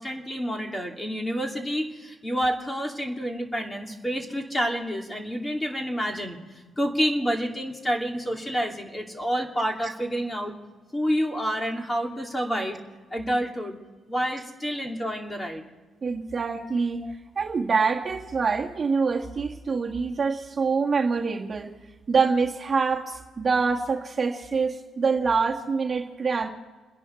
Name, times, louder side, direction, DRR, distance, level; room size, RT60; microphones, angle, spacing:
voice 1, 0.0-6.4 6.8-10.6 10.9-12.8 13.1-13.8 14.1-15.6, equal, 15° left, 2 dB, 2.7 m, -28 dB
voice 2, 16.0-17.0 17.3-21.7 22.1-26.5, right 5 dB, 35° right, 0 dB, 1.7 m, -25 dB
29.5 x 10.5 x 4.5 m, 1.3 s
cardioid pair, 90°, 0 cm